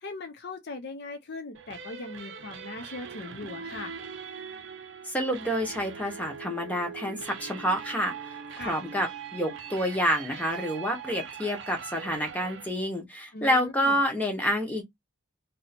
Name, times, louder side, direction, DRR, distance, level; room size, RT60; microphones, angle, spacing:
voice 1, 0.0-3.9 8.5-8.8 13.3-14.0, left 3 dB, 50° left, 0.6 m, -39 dB
sound 1, 1.5-12.7, right 6 dB, 60° right, 0.6 m, -41 dB
voice 2, 5.0-14.8, equal, 5° left, 1.0 m, -28 dB
3.0 x 2.7 x 4.2 m
head